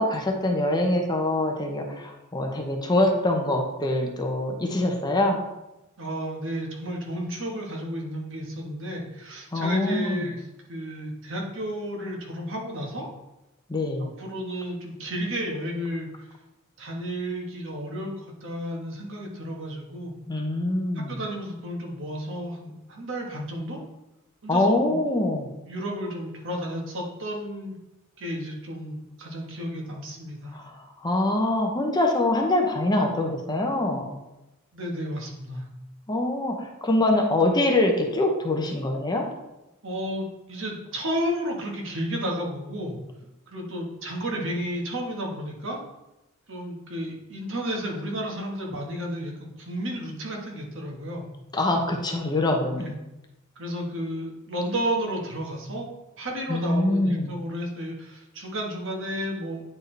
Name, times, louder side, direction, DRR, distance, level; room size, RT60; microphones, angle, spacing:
voice 1, 0.0-5.4 9.5-10.3 13.7-14.1 20.3-21.2 24.5-25.5 30.5-30.6 31.0-34.1 36.1-39.3 51.5-52.9 56.5-57.3, left 1 dB, 20° left, 2 dB, 0.8 m, -24 dB
voice 2, 6.0-13.1 14.2-16.3 16.8-20.1 20.9-23.8 24.4-25.0 25.7-27.8 28.2-30.6 34.7-35.6 39.8-43.0 43.5-45.8 46.5-51.2 52.7-52.9 53.6-55.9 56.2-59.6, equal, 60° right, 0 dB, 1.4 m, -32 dB
9.5 x 4.4 x 3.3 m, 0.96 s
head